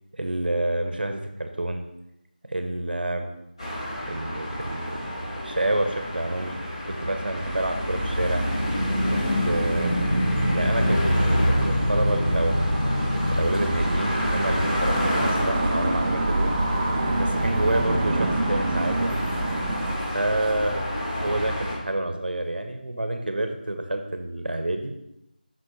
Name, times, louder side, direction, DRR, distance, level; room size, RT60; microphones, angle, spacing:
voice 1, 0.1-1.8 2.5-3.3 4.1-6.6 6.9-8.4 9.1-10.0 10.5-16.5 17.1-19.3 20.1-20.8 21.2-24.9, right 1 dB, 75° right, 6 dB, 0.9 m, -28 dB
sound 1, 3.6-21.8, equal, 40° left, 2.0 m, -27 dB
sound 2, 7.4-20.0, right 1 dB, 15° right, 0.6 m, -28 dB
7.6 x 6.1 x 3.1 m, 0.85 s
figure-of-eight pair, 170°, 5 cm